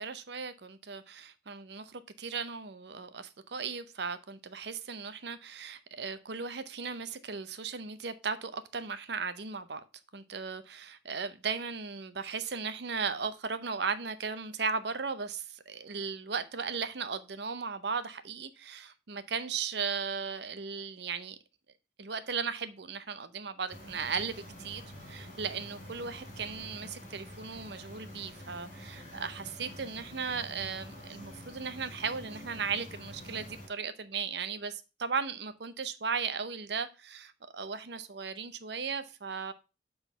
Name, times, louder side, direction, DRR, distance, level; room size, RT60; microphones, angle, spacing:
voice 1, 0.0-9.8 10.1-21.4 22.0-24.8 25.1-39.5, right 5 dB, 65° right, 0.7 m, -36 dB
sound 1, 23.7-33.7, equal, 35° left, 4.5 m, -47 dB
7.1 x 4.0 x 5.5 m
head